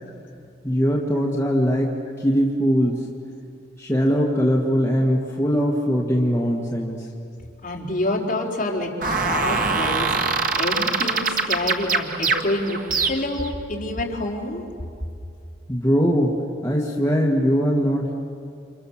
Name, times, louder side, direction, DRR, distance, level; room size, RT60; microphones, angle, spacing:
voice 1, 0.6-3.0 3.8-7.0 15.7-18.1, equal, 15° left, -4 dB, 1.9 m, -21 dB
voice 2, 7.6-10.1 10.6-14.6, left 1 dB, 45° left, -2 dB, 4.2 m, -27 dB
sound 1, 9.0-13.5, right 4 dB, 45° right, 1.6 m, -23 dB
29.5 x 27.0 x 7.4 m, 2.4 s
head